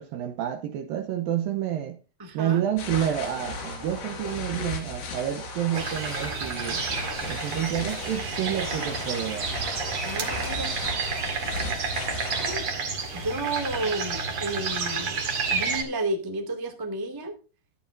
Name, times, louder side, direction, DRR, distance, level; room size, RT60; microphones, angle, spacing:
voice 1, 0.0-2.0 2.3-6.8 7.3-9.5, right 10 dB, 75° right, 2.2 m, -29 dB
voice 2, 2.2-2.6 10.0-10.7 12.4-12.7 13.1-17.3, right 2 dB, 15° right, 0.8 m, -32 dB
sound 1, 2.8-12.6, left 3 dB, 70° left, 5.5 m, -36 dB
sound 2, 5.7-15.8, right 4 dB, 45° right, 2.2 m, -30 dB
13.0 x 12.0 x 2.6 m
omnidirectional pair, 4.9 m